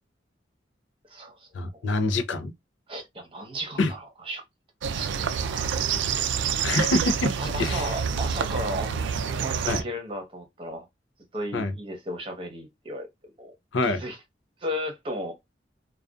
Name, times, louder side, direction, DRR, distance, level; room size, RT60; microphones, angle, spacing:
voice 1, 1.5-2.5 3.8-3.9 6.6-7.3 7.6-7.9 9.7-9.8 11.5-11.7 13.7-14.0, left 2 dB, 80° left, 0.5 m, -25 dB
voice 2, 2.9-4.4 4.9-5.9 7.4-8.9 9.4-10.9 11.3-13.5 13.8-14.2 14.6-15.4, equal, 30° right, 0.8 m, -35 dB
sound 1, 4.8-9.8, right 7 dB, 70° right, 0.3 m, -27 dB
2.5 x 2.3 x 2.3 m
head